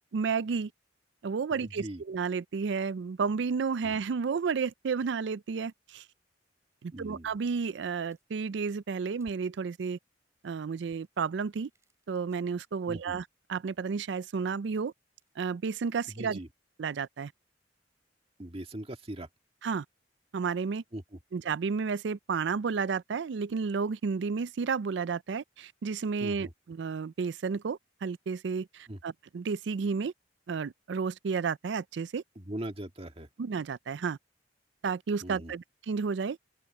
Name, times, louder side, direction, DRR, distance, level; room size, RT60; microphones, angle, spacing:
voice 1, 0.1-0.7 1.2-6.0 6.8-10.0 10.4-11.7 12.1-13.2 13.5-14.9 15.4-16.4 16.8-17.3 19.6-19.8 20.3-20.8 21.3-30.1 30.5-32.2 33.4-34.2 34.8-36.4, right 5 dB, 70° right, 0.4 m, -32 dB
voice 2, 1.5-2.0 3.8-3.9 6.9-7.3 12.9-13.1 16.1-16.5 18.4-19.3 20.9-21.2 26.2-26.5 28.9-29.0 32.4-33.3 35.2-35.5, right 1 dB, 30° right, 1.8 m, -40 dB
sound 1, 7.8-8.5 8.9-9.9 10.4-13.2 13.8-15.5, equal, 15° right, 7.8 m, -68 dB
open air
head